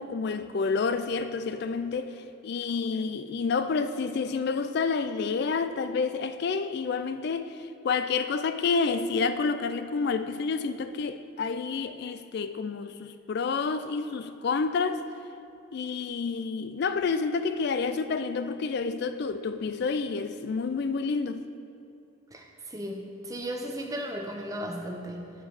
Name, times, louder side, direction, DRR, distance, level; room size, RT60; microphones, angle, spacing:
voice 1, 0.0-15.0 15.7-21.5, left 4 dB, 50° left, 0.3 m, -29 dB
voice 2, 22.3-25.3, equal, 15° right, 0.7 m, -36 dB
9.0 x 5.3 x 4.8 m
head